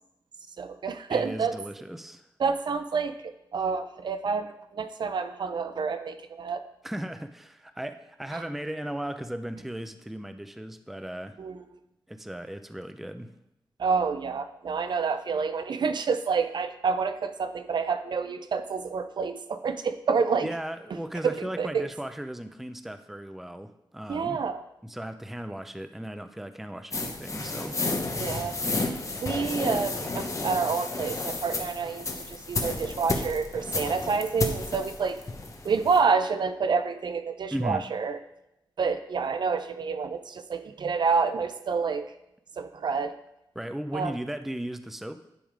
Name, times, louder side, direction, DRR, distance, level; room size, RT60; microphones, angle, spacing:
voice 1, 0.6-1.6 2.4-6.6 8.3-8.4 11.4-11.6 13.8-20.5 21.2-21.9 24.1-24.6 28.2-28.6 29.2-35.2 35.6-38.2 38.8-42.1 42.6-43.1 43.9-44.1, right 5 dB, 65° right, 10 dB, 0.4 m, -28 dB
voice 2, 1.1-2.3 6.8-11.4 12.1-13.3 20.4-24.4 24.8-27.8 37.5-37.8 43.6-45.2, right 1 dB, 5° right, 9 dB, 0.4 m, -36 dB
sound 1, 26.9-36.0, left 3 dB, 40° left, 0.9 m, -32 dB
10.5 x 3.5 x 4.9 m, 0.85 s
wide cardioid pair, 105°, 8 cm